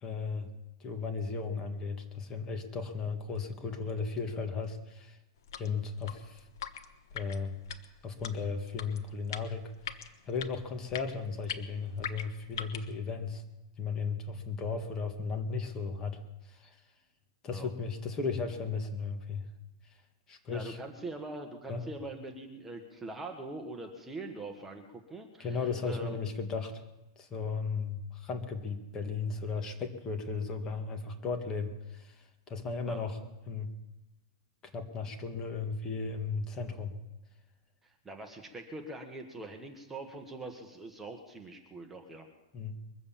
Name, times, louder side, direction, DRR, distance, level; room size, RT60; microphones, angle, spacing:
voice 1, 0.0-0.5 0.8-5.2 5.6-6.4 7.1-7.6 8.0-13.4 13.8-16.2 16.5-16.8 17.4-19.4 20.3-20.8 21.7-21.8 25.4-26.8 27.2-33.2 33.5-33.7 34.7-36.9 42.5-42.8, left 5 dB, 25° left, 5 dB, 1.8 m, -35 dB
sound 1, 5.4-12.9, left 8 dB, 70° left, 1.3 m, -43 dB
voice 2, 20.5-26.2 32.9-33.0 37.8-42.3, right 2 dB, 10° right, 3 dB, 1.5 m, -43 dB
22.5 x 8.0 x 7.3 m, 0.99 s
supercardioid pair, 150°, 2 cm